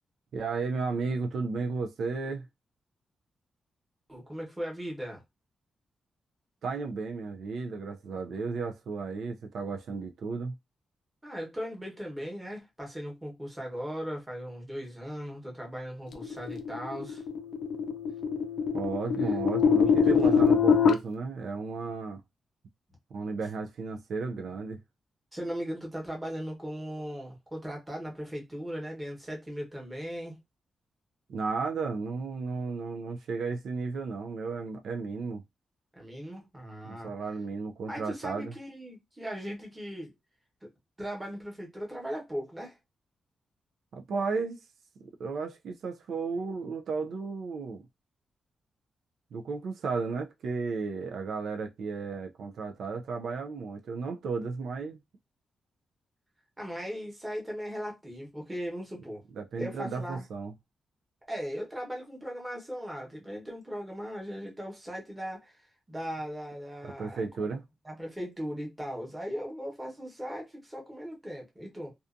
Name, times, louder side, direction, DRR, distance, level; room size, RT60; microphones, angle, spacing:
voice 1, 0.3-2.5 6.6-10.6 18.7-22.2 23.1-24.8 31.3-35.4 36.8-38.5 43.9-44.6 45.0-47.9 49.3-55.0 59.3-60.5 66.8-67.6, right 4 dB, 75° right, 0.3 m, -34 dB
voice 2, 4.1-5.2 11.2-17.2 19.2-19.4 19.8-20.3 25.3-30.4 35.9-37.1 37.9-40.1 40.6-40.7 41.0-42.8 56.6-59.2 59.6-60.3 61.3-67.5 67.8-71.9, equal, 10° right, 1.0 m, -38 dB
sound 1, 16.2-20.9, left 6 dB, 70° left, 0.4 m, -24 dB
2.5 x 2.3 x 2.4 m
wide cardioid pair, 140°, 0 cm